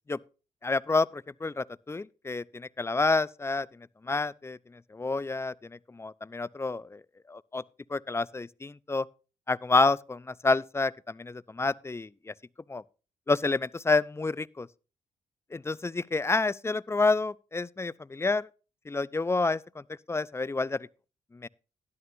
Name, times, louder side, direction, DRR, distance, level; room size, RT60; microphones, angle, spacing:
voice 1, 0.6-3.7 4.0-4.6 4.9-7.0 7.3-7.6 7.9-9.1 9.5-12.3 12.7-12.8 13.3-14.7 15.5-18.5 18.9-20.9 21.3-21.5, left 3 dB, 20° left, 0.5 m, -29 dB
12.5 x 11.0 x 2.7 m
cardioid pair, 70°, 14 cm